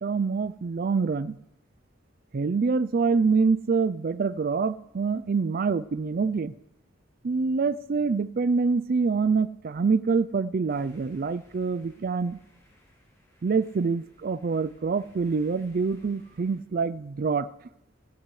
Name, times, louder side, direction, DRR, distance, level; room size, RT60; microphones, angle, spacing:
voice 1, 0.0-1.4 2.3-6.5 7.2-12.4 13.4-17.5, right 4 dB, 45° right, 17 dB, 0.4 m, -26 dB
sound 1, 10.7-16.6, equal, 15° left, 4.6 m, -60 dB
16.5 x 16.0 x 3.2 m, 0.87 s
head